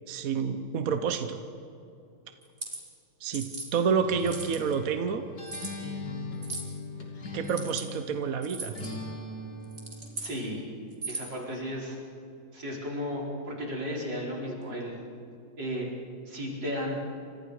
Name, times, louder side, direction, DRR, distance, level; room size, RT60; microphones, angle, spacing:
voice 1, 0.1-1.4 3.2-3.4 3.7-5.2 7.3-8.7, right 6 dB, 55° right, 8 dB, 1.3 m, -28 dB
sound 1, 2.4-2.8 3.3-3.7 4.2-4.7 5.5-5.7 6.4-6.7 7.4-7.8 8.4-8.9 9.6-10.3 10.9-11.4, right 3 dB, 35° right, 3.5 m, -38 dB
Acoustic guitar, 4.0-8.1 8.7-10.3, left 2 dB, 55° left, 3.4 m, -39 dB
voice 2, 10.2-10.7 11.1-12.0 12.5-14.9 15.6-15.9 16.3-17.0, equal, 75° right, -3 dB, 5.3 m, -34 dB
29.0 x 26.0 x 5.0 m, 2.6 s
omnidirectional pair, 2.0 m